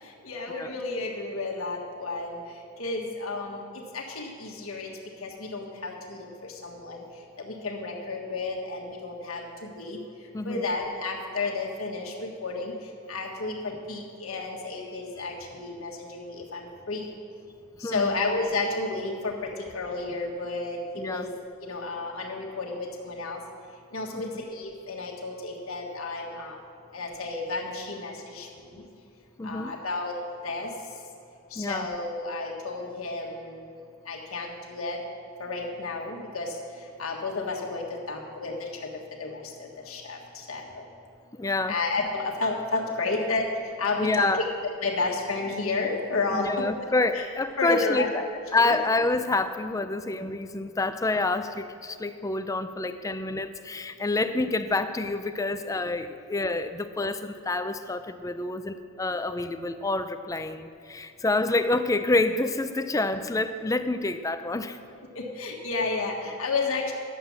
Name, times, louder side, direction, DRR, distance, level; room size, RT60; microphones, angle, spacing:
voice 1, 0.0-2.4 2.8-4.9 5.2-7.0 7.4-10.0 10.4-12.7 13.1-17.1 17.8-21.3 21.6-23.4 23.9-26.6 26.9-28.8 29.4-30.1 30.4-30.7 31.5-35.0 35.4-40.8 41.7-43.5 43.8-44.4 44.8-46.6 47.1-47.2 47.6-48.1 48.6-48.8 65.1-66.9, left 3 dB, 75° left, -1 dB, 1.5 m, -32 dB
voice 2, 10.3-10.7 17.8-18.2 21.0-21.3 24.1-24.4 29.4-29.7 31.6-31.9 41.4-41.8 43.2-43.3 44.0-44.5 46.3-48.3 48.5-64.8, left 2 dB, 15° left, 10 dB, 0.4 m, -28 dB
10.5 x 7.7 x 7.2 m, 2.6 s
head